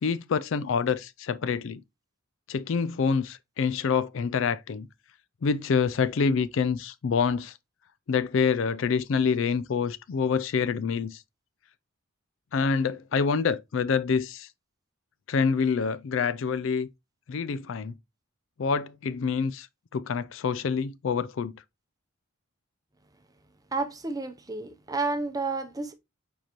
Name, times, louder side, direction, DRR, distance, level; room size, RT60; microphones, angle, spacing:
voice 1, 0.0-1.8 2.5-4.9 5.4-7.6 8.1-11.2 12.5-14.5 15.3-16.9 17.3-17.9 18.6-19.7 19.9-21.6, left 5 dB, 60° left, 0.4 m, -26 dB
voice 2, 23.7-25.9, right 3 dB, 15° right, 0.7 m, -31 dB
7.4 x 4.5 x 3.0 m
head